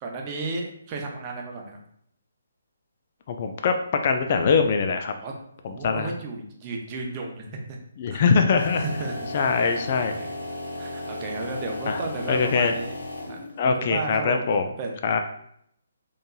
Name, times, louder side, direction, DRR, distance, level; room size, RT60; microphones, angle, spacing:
voice 1, 0.0-1.8 5.2-5.3 5.7-7.8 8.1-8.2 8.7-10.3 10.8-12.9 13.3-14.5 14.8-14.9, right 3 dB, 25° right, 1 dB, 0.6 m, -34 dB
voice 2, 3.3-3.8 4.0-5.1 5.6-6.1 8.0-8.8 9.3-10.1 11.9-12.0 12.3-12.7 13.6-14.7 15.0-15.2, left 5 dB, 40° left, 6 dB, 0.3 m, -22 dB
sound 1, 8.5-13.7, left 2 dB, 70° left, 0.8 m, -35 dB
4.3 x 3.1 x 2.3 m, 0.70 s
figure-of-eight pair, 140°, 0 cm